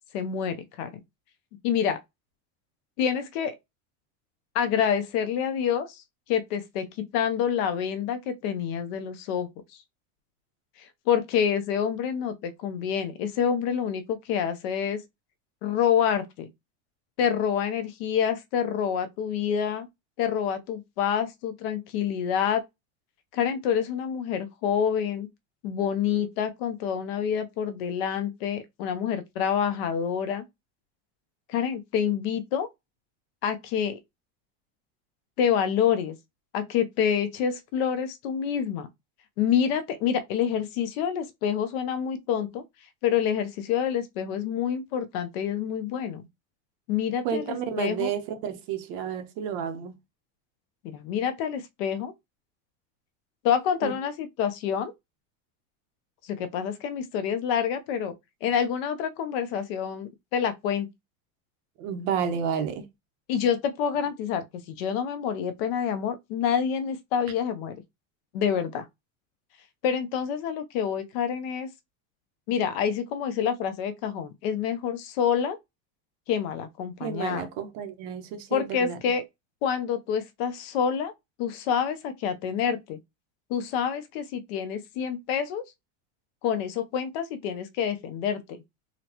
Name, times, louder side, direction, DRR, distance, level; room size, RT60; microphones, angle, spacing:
voice 1, 0.1-0.9 1.6-2.0 3.0-3.6 4.5-6.0 6.3-9.5 10.8-15.0 15.6-16.5 17.2-19.9 20.2-22.6 23.3-25.3 25.6-30.4 31.5-32.7 33.4-34.0 35.4-36.2 36.5-38.9 39.4-42.6 43.0-46.2 46.9-48.1 50.8-52.1 53.4-54.9 56.2-58.1 58.4-60.9 63.3-67.8 68.3-68.9 69.8-71.7 72.5-75.6 76.3-77.5 78.5-79.2 79.6-81.1 81.4-83.0 83.5-85.6 86.4-88.4, left 8 dB, 55° left, 0.6 m, -27 dB
voice 2, 47.2-49.9 53.8-53.9 61.8-62.9 77.0-79.0, right 7 dB, 45° right, 0.6 m, -31 dB
3.9 x 2.1 x 2.8 m
cardioid pair, 180°, 36 cm